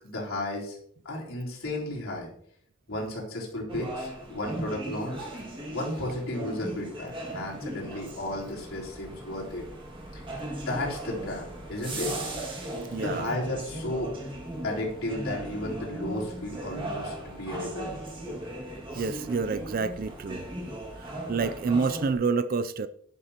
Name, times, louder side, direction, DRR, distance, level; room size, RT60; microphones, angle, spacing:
voice 1, 0.0-0.8 1.0-2.3 2.9-5.2 5.7-9.6 10.1-10.2 10.7-12.1 13.0-14.1 14.6-17.9, left 1 dB, 75° left, 3.8 m, -33 dB
sound 1, 3.7-22.1, right 1 dB, 25° right, 2.1 m, -37 dB
voice 2, 12.9-13.3 18.9-20.5 21.0-22.9, right 4 dB, 40° right, 0.4 m, -28 dB
11.5 x 11.0 x 2.9 m
head